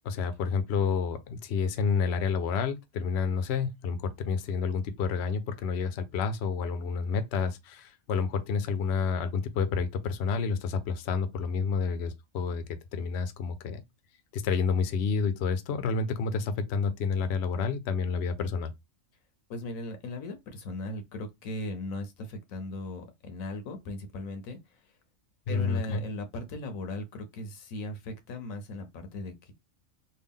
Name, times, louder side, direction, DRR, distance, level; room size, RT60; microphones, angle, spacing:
voice 1, 0.0-13.8 14.3-18.7 25.5-26.0, left 5 dB, 60° left, 0.8 m, -29 dB
voice 2, 19.5-24.6 25.5-29.5, left 2 dB, 85° left, 1.2 m, -38 dB
3.4 x 2.3 x 3.6 m
omnidirectional pair, 1.4 m